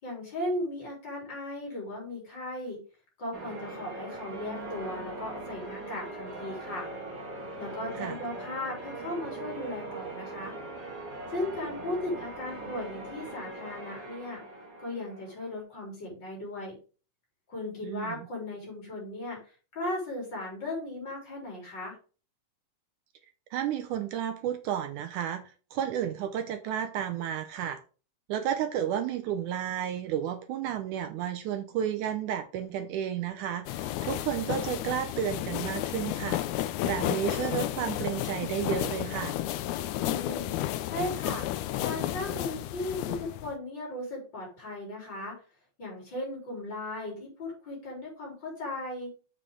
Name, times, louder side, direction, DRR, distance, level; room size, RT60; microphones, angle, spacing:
voice 1, 0.0-2.8 3.2-6.9 7.6-10.5 11.3-14.4 14.8-16.7 17.5-22.0 39.9-40.5 40.8-41.5 41.8-45.3 45.8-49.1, left 1 dB, 30° left, 4.3 m, -36 dB
Church bell, 3.3-15.6, right 2 dB, 30° right, 1.7 m, -41 dB
voice 2, 17.8-18.3 23.5-27.8 28.3-36.4 36.8-39.4, right 9 dB, 75° right, 1.9 m, -32 dB
sound 1, 33.7-43.5, left 13 dB, 90° left, 1.7 m, -32 dB
7.2 x 6.9 x 3.7 m
omnidirectional pair, 4.1 m